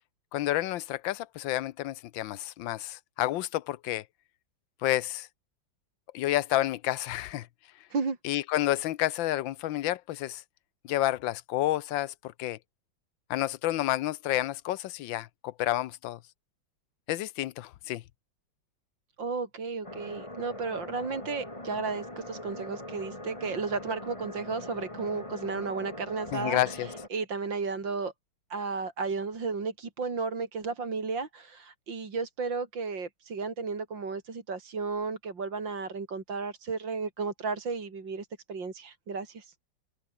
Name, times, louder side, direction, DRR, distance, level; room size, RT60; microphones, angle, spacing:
voice 1, 0.3-4.0 4.8-5.3 6.1-7.5 8.2-10.4 10.8-12.6 13.3-16.2 17.1-18.0 26.3-26.9, left 14 dB, 80° left, 1.5 m, -30 dB
voice 2, 19.2-28.1 28.5-39.5, right 4 dB, 70° right, 3.9 m, -33 dB
sound 1, 19.8-27.1, left 1 dB, 15° left, 4.2 m, -42 dB
open air
omnidirectional pair, 2.1 m